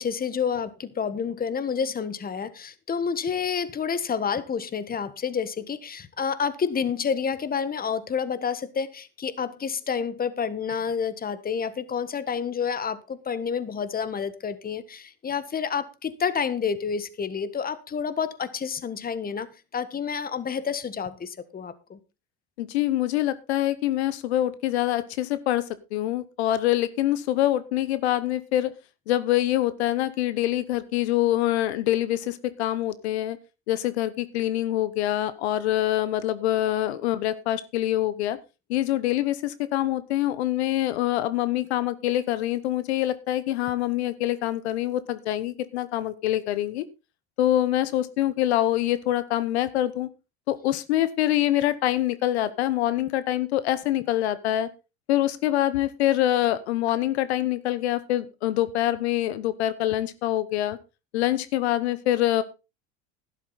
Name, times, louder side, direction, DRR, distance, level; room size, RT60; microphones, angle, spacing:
voice 1, 0.0-22.0, left 6 dB, 30° left, 1.4 m, -29 dB
voice 2, 22.6-28.7 29.1-33.4 33.7-38.4 38.7-46.8 47.4-50.1 50.5-54.7 55.1-60.8 61.1-62.4, left 13 dB, 85° left, 1.0 m, -25 dB
12.0 x 11.5 x 4.0 m
hypercardioid pair, 85°, 32 cm